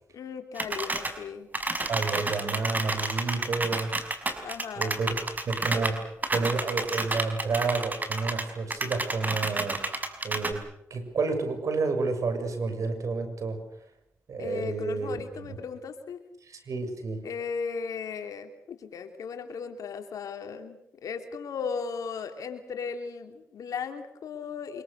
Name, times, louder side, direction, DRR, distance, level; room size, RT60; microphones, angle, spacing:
voice 1, 0.1-1.5 4.4-5.0 14.4-16.2 17.2-24.8, left 6 dB, 75° left, 6 dB, 3.1 m, -36 dB
sound 1, 0.6-1.1 1.5-8.4 8.7-10.5, right 2 dB, 30° right, 5.2 m, -30 dB
voice 2, 1.9-4.0 4.8-5.1 5.5-9.8 10.2-10.6 10.9-13.6 14.3-15.2 16.5-17.2, right 4 dB, 65° right, 8 dB, 6.6 m, -30 dB
25.5 x 23.5 x 6.8 m, 0.79 s
supercardioid pair, 55°, 6 cm